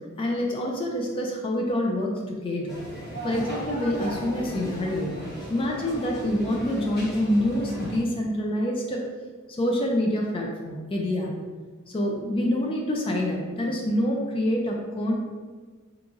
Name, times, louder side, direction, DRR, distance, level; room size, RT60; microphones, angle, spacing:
voice 1, 0.2-2.8 3.2-5.1 5.5-9.0 9.6-11.3 11.9-15.1, left 1 dB, 25° left, 0 dB, 0.3 m, -26 dB
sound 1, 2.7-8.0, right 1 dB, 50° left, 1.3 m, -36 dB
3.6 x 2.9 x 2.5 m, 1.4 s
head